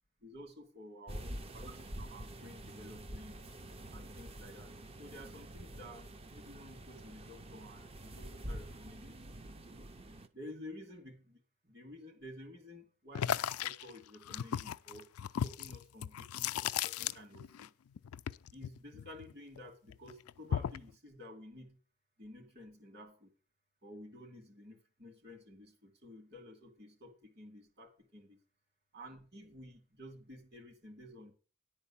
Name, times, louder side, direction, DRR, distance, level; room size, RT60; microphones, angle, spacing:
voice 1, 0.2-3.5 3.9-4.7 5.0-9.4 9.7-9.9 10.3-15.1 15.4-17.7 18.5-21.8 22.2-23.3 23.8-28.4 28.9-31.3, left 1 dB, 50° right, 4 dB, 2.8 m, -52 dB
sound 1, 1.1-10.3, right 1 dB, 25° right, 0.6 m, -47 dB
sound 2, 13.1-17.7 17.9-19.6 19.9-20.9, left 9 dB, 90° left, 0.4 m, -36 dB
10.5 x 4.4 x 7.2 m, 0.37 s
head